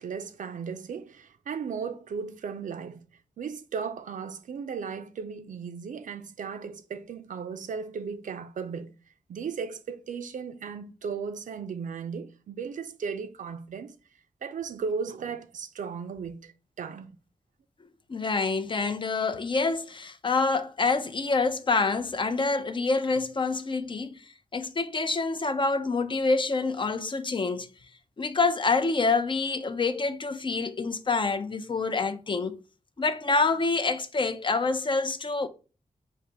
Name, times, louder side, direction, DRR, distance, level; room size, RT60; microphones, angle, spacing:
voice 1, 0.0-3.0 3.4-8.9 9.3-13.9 14.4-17.1, right 6 dB, 80° right, 0.5 m, -36 dB
voice 2, 18.1-24.3 24.5-27.7 28.2-32.6 33.0-35.5, left 3 dB, 40° left, 0.5 m, -27 dB
4.1 x 2.5 x 4.7 m
wide cardioid pair, 80°, 13 cm